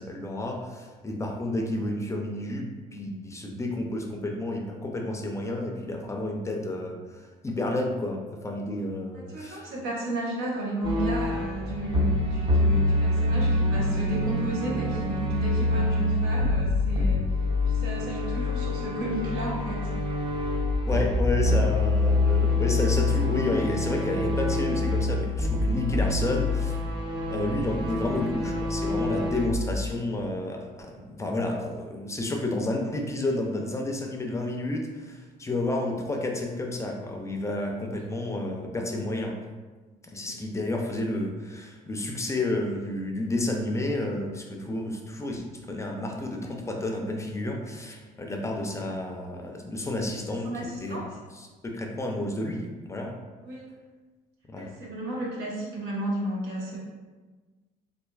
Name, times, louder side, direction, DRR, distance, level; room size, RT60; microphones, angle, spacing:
voice 1, 0.0-2.7 2.9-9.7 20.9-26.9 27.3-39.3 40.0-51.0 51.6-53.2 54.5-54.7, left 2 dB, 15° left, 2 dB, 0.4 m, -31 dB
voice 2, 9.1-17.3 17.6-20.1 40.3-40.4 50.2-51.2 53.4-53.7 54.6-56.8, right 1 dB, 85° right, -4 dB, 1.0 m, -33 dB
sound 1, 10.8-29.5, left 2 dB, 30° right, 0.6 m, -26 dB
4.2 x 2.5 x 2.3 m, 1.3 s
cardioid pair, 110°, 17 cm